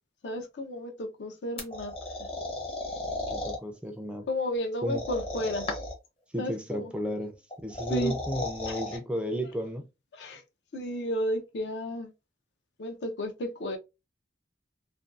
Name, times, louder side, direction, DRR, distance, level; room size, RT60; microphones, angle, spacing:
voice 1, 0.2-2.3 4.3-5.7 6.4-6.9 7.9-8.2 8.7-8.8 10.1-10.4 10.7-12.1 12.8-13.8, left 1 dB, 75° left, 0.5 m, -33 dB
sound 1, 1.6-3.6 4.9-6.1 7.5-9.0, left 2 dB, 35° left, 0.7 m, -35 dB
voice 2, 3.3-4.3 4.8-5.0 6.3-9.9, equal, 5° right, 0.3 m, -33 dB
2.5 x 2.2 x 2.3 m
head